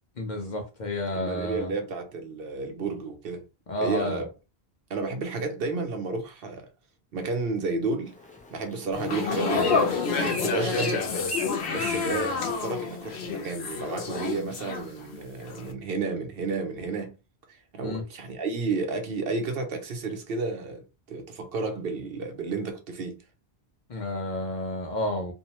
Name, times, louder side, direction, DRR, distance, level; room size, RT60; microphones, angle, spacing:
voice 1, 0.2-1.7 3.7-4.2 17.8-18.0 23.9-25.3, left 1 dB, 50° left, 0.7 m, -31 dB
voice 2, 1.1-3.4 3.8-4.3 4.9-6.7 7.1-8.1 8.5-11.1 11.7-17.2 17.7-20.8 21.1-23.2, right 3 dB, 65° right, 0.8 m, -31 dB
Bird, 8.1-13.2, equal, 15° left, 0.3 m, -40 dB
sound 1, 8.9-15.2 15.5-15.7, left 5 dB, 80° left, 0.9 m, -29 dB
2.6 x 2.1 x 2.8 m
omnidirectional pair, 1.1 m